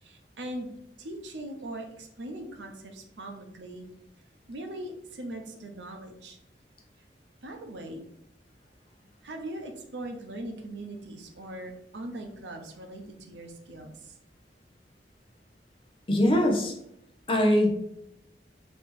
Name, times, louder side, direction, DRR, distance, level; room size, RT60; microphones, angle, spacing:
voice 1, 0.0-0.7 1.0-3.8 4.5-6.4 7.4-8.0 9.2-14.1, right 1 dB, 90° right, 4 dB, 0.7 m, -40 dB
voice 2, 16.1-16.7 17.3-17.7, left 1 dB, 30° left, 2 dB, 0.7 m, -22 dB
3.3 x 2.9 x 4.4 m, 0.77 s
head